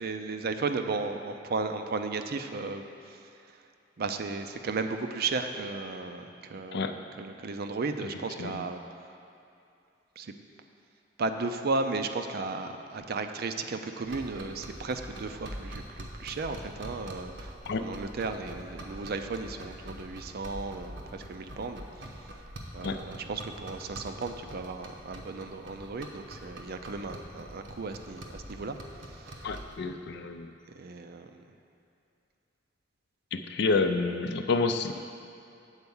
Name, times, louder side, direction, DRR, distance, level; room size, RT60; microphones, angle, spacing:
voice 1, 0.0-3.2 4.0-9.2 10.2-10.3 11.2-22.1 22.7-28.8 29.1-29.5 30.7-31.4, right 3 dB, 55° right, 7 dB, 0.5 m, -35 dB
sound 1, 14.0-29.8, right 1 dB, 75° right, 1.0 m, -44 dB
voice 2, 29.4-30.5 33.3-35.0, left 4 dB, 65° left, 7 dB, 0.5 m, -29 dB
8.1 x 4.6 x 7.0 m, 2.6 s
head